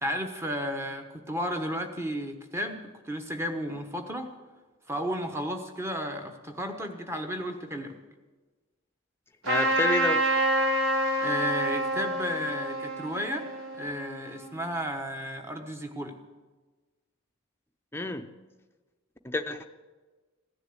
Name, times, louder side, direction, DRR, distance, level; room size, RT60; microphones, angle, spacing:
voice 1, 0.0-4.3 4.9-8.0 11.2-13.5 13.8-16.2, equal, 10° right, 5 dB, 1.2 m, -33 dB
Trumpet, 9.4-14.5, right 1 dB, 75° right, 4.2 m, -28 dB
voice 2, 9.5-10.2 17.9-18.2 19.2-19.7, left 2 dB, 10° left, 5 dB, 0.7 m, -29 dB
16.0 x 10.5 x 7.9 m, 1.3 s
head